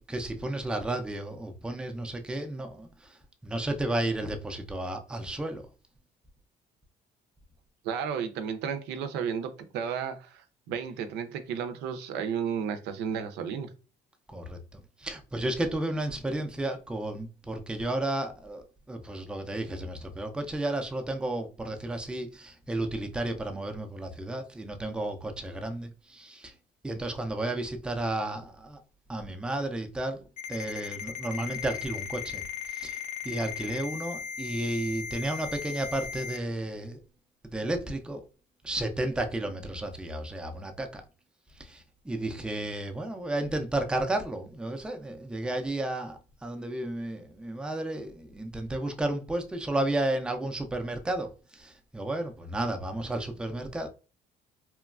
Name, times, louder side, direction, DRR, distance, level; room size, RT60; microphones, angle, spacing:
voice 1, 0.1-2.9 3.4-5.6 14.3-26.5 26.8-28.8 29.1-32.4 32.7-37.0 37.4-38.2 38.6-41.0 41.6-53.9, right 1 dB, 5° right, 0.4 m, -33 dB
voice 2, 7.8-13.7, right 7 dB, 90° right, 0.5 m, -33 dB
Ringtone, 30.4-36.4, left 6 dB, 50° left, 0.5 m, -37 dB
3.0 x 2.2 x 2.3 m
cardioid pair, 110°, 17 cm